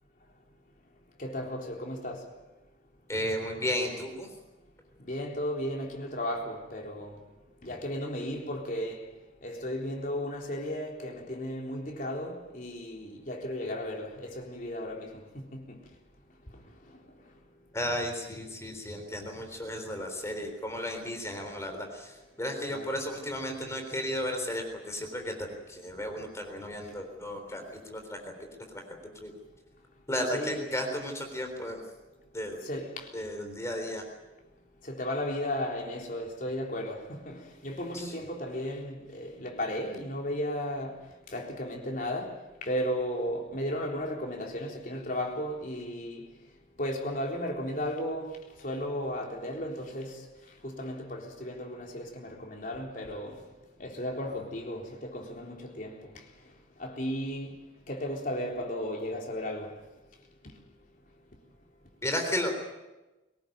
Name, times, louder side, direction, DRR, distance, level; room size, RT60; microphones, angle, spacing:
voice 1, 1.2-2.3 5.0-7.2 7.6-9.1 9.4-15.1 15.5-15.6 22.7-22.9 30.3-30.7 32.6-33.1 34.8-41.0 41.3-46.2 46.8-48.3 48.6-50.2 50.6-53.4 53.8-55.9 56.8-57.6 57.9-59.7, equal, 50° left, 3.8 m, -35 dB
voice 2, 3.1-4.3 17.7-28.3 28.7-28.8 29.2-29.3 30.1-31.8 32.3-32.6 33.1-34.0 37.9-38.1 62.0-62.5, left 1 dB, 15° left, 3.7 m, -34 dB
23.5 x 18.5 x 9.2 m
head